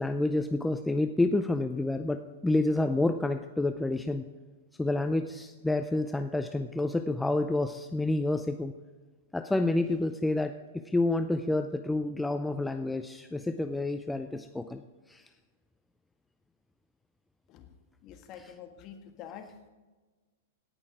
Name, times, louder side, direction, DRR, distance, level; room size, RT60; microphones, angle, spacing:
voice 1, 0.0-4.3 4.8-8.7 9.3-14.8 15.1-15.3 18.4-18.5, left 2 dB, 5° left, 7 dB, 0.4 m, -29 dB
voice 2, 18.0-19.7, left 8 dB, 40° left, 6 dB, 1.6 m, -47 dB
17.0 x 6.2 x 4.9 m, 1.3 s
hypercardioid pair, 110°, 0 cm